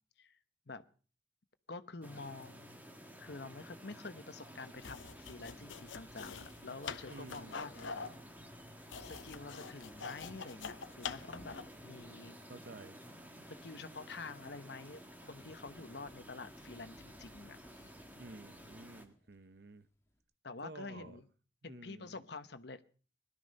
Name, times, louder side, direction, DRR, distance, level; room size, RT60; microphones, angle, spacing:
voice 1, 1.7-2.8 3.2-7.7 9.0-11.5 11.8-12.4 13.6-17.9 20.4-21.2 21.6-22.8, left 3 dB, 55° left, 1.1 m, -48 dB
sound 1, 2.0-19.1, equal, 10° right, 1.7 m, -53 dB
sound 2, 4.7-11.8, left 5 dB, 75° left, 0.9 m, -46 dB
voice 2, 7.1-8.2 12.5-13.0 18.1-19.9 20.6-21.2 21.6-22.2, right 2 dB, 55° right, 0.8 m, -52 dB
Fire, 9.7-9.9 11.1-20.2, equal, 15° left, 2.2 m, -63 dB
21.0 x 12.5 x 5.4 m
head